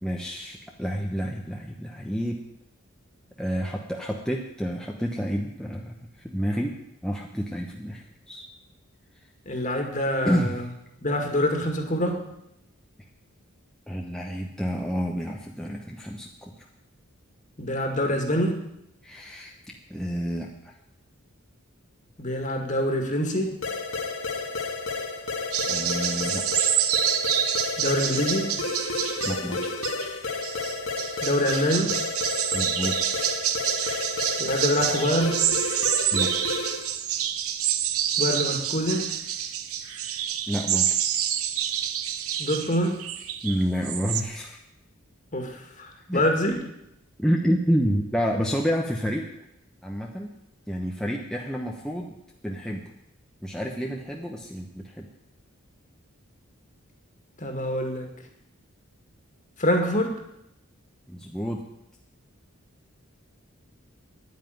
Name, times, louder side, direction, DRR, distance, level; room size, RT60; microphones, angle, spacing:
voice 1, 0.0-2.4 3.4-5.9 6.2-6.7 7.0-8.4 10.2-10.7 13.9-16.5 19.0-19.5 19.9-20.7 25.7-26.6 29.2-29.7 32.5-33.0 36.1-36.3 40.5-40.9 43.4-44.6 46.1-46.2 47.2-49.2 49.8-50.3 50.7-52.1 52.4-52.8 53.4-55.1 61.1-61.6, equal, 5° left, -1 dB, 0.9 m, -29 dB
voice 2, 9.5-10.6 11.0-12.2 17.6-18.6 22.2-23.5 27.8-28.5 31.2-31.9 34.4-35.4 38.2-39.0 42.4-43.0 45.3-46.5 57.4-58.1 59.6-60.1, equal, 35° left, 3 dB, 2.2 m, -25 dB
sound 1, 23.6-37.0, left 3 dB, 65° left, 1.7 m, -31 dB
sound 2, 25.5-44.2, right 10 dB, 85° right, 0.9 m, -27 dB
10.0 x 9.3 x 9.3 m, 0.82 s
head